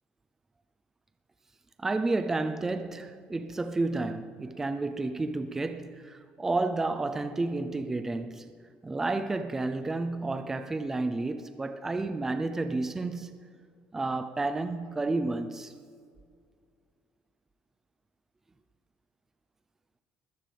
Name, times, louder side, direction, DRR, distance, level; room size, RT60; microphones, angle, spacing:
voice 1, 1.8-8.5 8.8-13.4 13.9-15.7, right 2 dB, 10° right, 0.5 m, -31 dB
20.0 x 16.0 x 3.4 m
cardioid pair, 175°, 4 cm